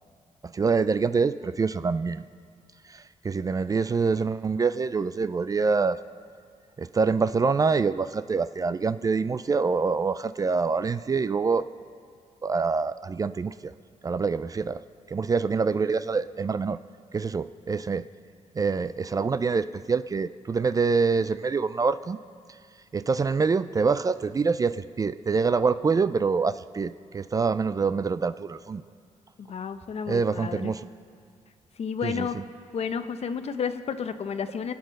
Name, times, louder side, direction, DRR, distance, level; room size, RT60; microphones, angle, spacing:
voice 1, 0.4-2.2 2.9-6.0 6.8-11.6 12.4-13.7 14.0-14.8 15.1-16.8 17.1-18.1 18.6-22.2 22.9-28.8 30.1-30.9 32.0-32.4, right 4 dB, 30° right, 14 dB, 0.3 m, -25 dB
voice 2, 29.4-30.7 31.8-32.4 32.7-34.7, left 6 dB, 55° left, 10 dB, 0.8 m, -31 dB
24.0 x 8.2 x 6.4 m, 2.1 s
cardioid pair, 100°, 13 cm